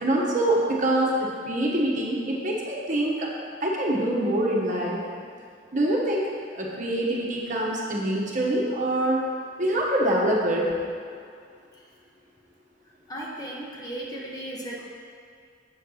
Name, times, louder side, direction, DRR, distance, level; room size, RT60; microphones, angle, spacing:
voice 1, 0.0-1.1 1.4-3.3 3.6-5.0 5.7-9.2 9.6-10.7, right 1 dB, 45° right, -3 dB, 1.3 m, -25 dB
voice 2, 13.1-14.8, right 1 dB, 20° left, -4 dB, 1.1 m, -36 dB
7.9 x 4.6 x 6.4 m, 2.4 s
head